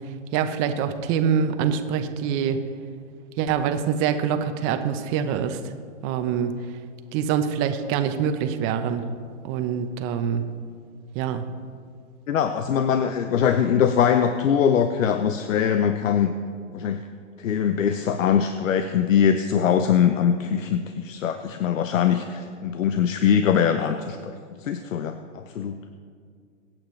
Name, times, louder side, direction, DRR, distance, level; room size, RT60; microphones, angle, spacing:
voice 1, 0.3-2.6 3.4-5.6 6.0-6.5 7.1-9.0 9.4-10.4 11.1-11.4, right 8 dB, 30° right, 8 dB, 0.9 m, -25 dB
voice 2, 12.3-16.3 16.7-17.0 17.4-24.3 24.6-25.8, left 8 dB, 80° left, 8 dB, 0.8 m, -22 dB
24.0 x 8.9 x 3.2 m, 2.1 s
hypercardioid pair, 135°, 39 cm